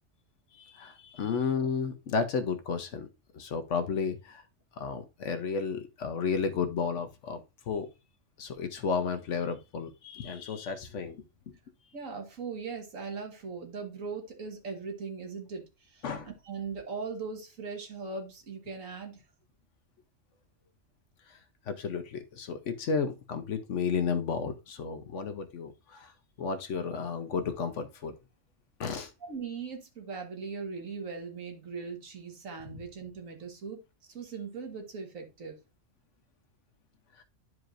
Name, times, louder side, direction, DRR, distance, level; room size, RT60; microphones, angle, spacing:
voice 1, 0.5-3.1 3.3-4.4 4.8-7.9 8.4-11.2 16.0-16.3 21.7-26.1 26.4-28.1 28.8-29.1, left 5 dB, 65° left, 8 dB, 1.0 m, -32 dB
voice 2, 11.9-19.2 29.2-33.8 34.1-35.6, right 5 dB, 80° right, 3 dB, 1.8 m, -39 dB
11.0 x 4.7 x 2.5 m, 0.26 s
omnidirectional pair, 1.4 m